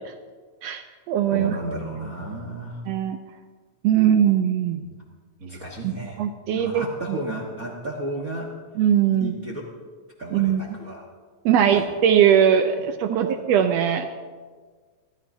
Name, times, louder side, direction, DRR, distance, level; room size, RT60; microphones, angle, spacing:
voice 1, 0.6-1.6 2.9-3.2 3.8-4.8 5.8-7.2 8.8-9.3 10.3-10.6 11.4-14.1, right 9 dB, 80° right, 7 dB, 1.5 m, -20 dB
voice 2, 1.3-2.8 4.0-4.1 4.8-4.9 5.4-6.2 6.5-8.5 9.2-9.7 10.2-11.0 11.7-11.8 13.1-13.3, right 2 dB, 50° right, -1 dB, 1.0 m, -33 dB
19.0 x 13.0 x 2.7 m, 1.5 s
omnidirectional pair, 3.5 m